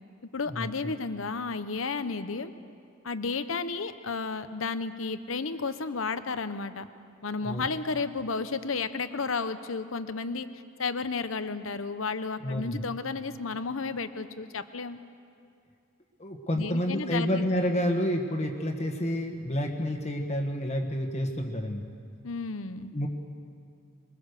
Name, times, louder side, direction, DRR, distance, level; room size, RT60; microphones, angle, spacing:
voice 1, 0.3-2.5 3.0-6.9 7.2-10.5 10.8-15.0 16.5-17.4 22.2-22.9, left 4 dB, 80° left, 11 dB, 1.0 m, -32 dB
voice 2, 12.4-12.8 16.2-21.9 22.9-23.1, equal, 35° left, 3 dB, 1.6 m, -29 dB
22.5 x 21.0 x 6.7 m, 2.5 s
head